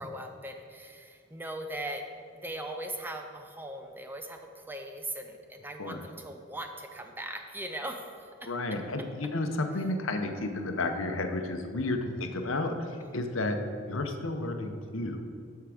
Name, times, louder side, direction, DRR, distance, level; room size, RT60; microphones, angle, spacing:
voice 1, 0.0-2.0 2.4-8.5 13.0-13.2, right 1 dB, 10° right, 4 dB, 0.5 m, -39 dB
voice 2, 8.5-13.6 13.9-15.2, left 2 dB, 75° left, 6 dB, 0.8 m, -32 dB
13.0 x 4.6 x 5.0 m, 2.2 s
head